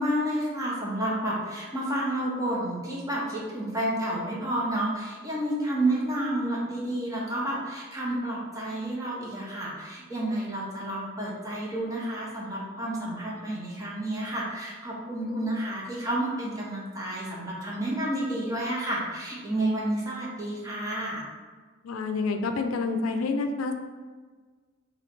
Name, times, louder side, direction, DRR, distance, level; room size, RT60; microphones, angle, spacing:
voice 1, 0.0-21.3, right 1 dB, 15° right, -5 dB, 0.8 m, -30 dB
voice 2, 21.8-23.7, left 3 dB, 90° left, 6 dB, 0.4 m, -28 dB
3.1 x 2.7 x 4.2 m, 1.4 s
head